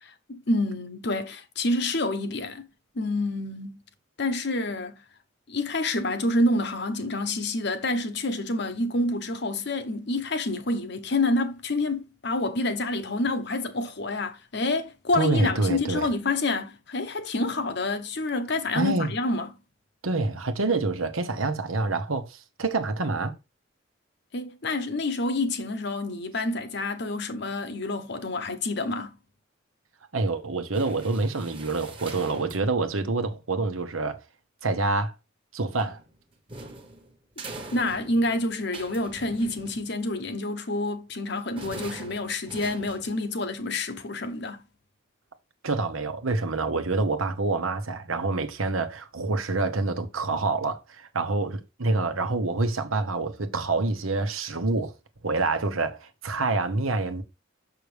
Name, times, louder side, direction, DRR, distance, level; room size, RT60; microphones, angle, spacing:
voice 1, 0.0-2.7 2.9-3.8 4.2-5.0 5.5-19.5 24.3-29.2 37.7-44.6, left 2 dB, 55° left, 0.9 m, -28 dB
voice 2, 15.1-16.1 18.7-19.1 20.0-23.3 30.1-34.2 34.6-35.1 35.5-36.0 45.6-54.9 55.2-57.2, right 3 dB, 90° right, 1.1 m, -27 dB
sound 1, 30.7-32.8 35.7-40.2 41.5-43.5, right 2 dB, 25° right, 1.2 m, -43 dB
6.5 x 5.9 x 3.4 m
head